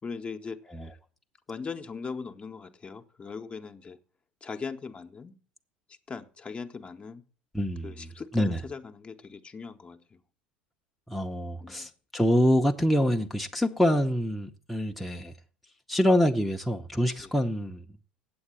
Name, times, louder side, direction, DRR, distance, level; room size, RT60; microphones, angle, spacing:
voice 1, 0.0-1.0 1.5-4.0 4.4-5.4 5.9-7.2 7.8-10.0 11.6-11.9 17.2-17.4, left 5 dB, 25° left, 0.9 m, -40 dB
voice 2, 7.5-8.1 8.3-8.6 11.1-15.3 15.9-17.8, equal, ahead, 0.8 m, -26 dB
8.7 x 8.1 x 7.5 m
figure-of-eight pair, 70°, 5 cm